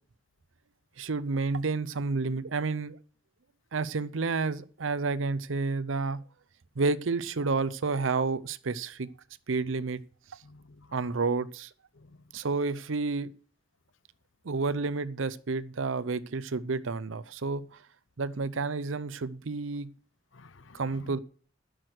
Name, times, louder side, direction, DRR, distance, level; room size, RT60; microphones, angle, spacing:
voice 1, 1.0-3.0 3.7-6.2 6.8-9.1 9.5-10.0 10.9-11.7 12.3-13.3 14.4-17.6 18.2-19.9 20.7-21.2, right 4 dB, 90° right, 0.7 m, -30 dB
voice 2, 10.4-11.1 11.9-12.4 20.3-21.2, left 2 dB, 80° left, 0.7 m, -53 dB
12.0 x 6.3 x 6.4 m
head